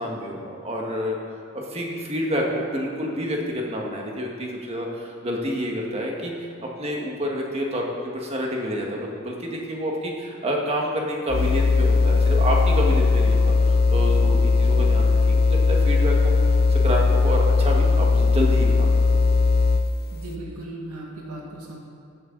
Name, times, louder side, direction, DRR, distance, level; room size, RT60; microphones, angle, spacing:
voice 1, 0.0-6.5 6.8-19.1, equal, 25° right, -1 dB, 1.7 m, -28 dB
sound 1, 11.3-20.0, left 3 dB, 45° left, 0.5 m, -19 dB
voice 2, 20.1-21.8, right 1 dB, 80° right, -2 dB, 2.0 m, -37 dB
15.0 x 11.0 x 4.0 m, 2.7 s
head